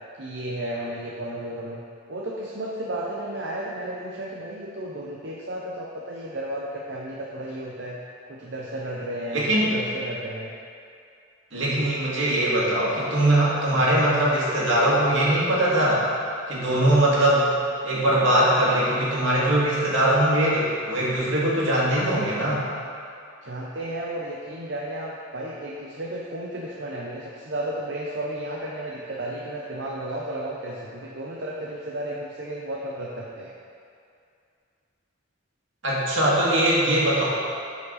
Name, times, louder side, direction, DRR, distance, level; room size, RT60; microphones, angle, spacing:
voice 1, 0.2-1.8 2.1-8.0 8.3-10.5 13.7-13.9 23.4-33.5, right 1 dB, 65° right, -3 dB, 0.8 m, -33 dB
voice 2, 9.3-9.7 11.5-16.0 16.5-17.5 17.8-22.6 35.8-37.2, right 1 dB, 80° right, -6 dB, 2.2 m, -21 dB
11.5 x 5.2 x 4.1 m, 2.4 s
head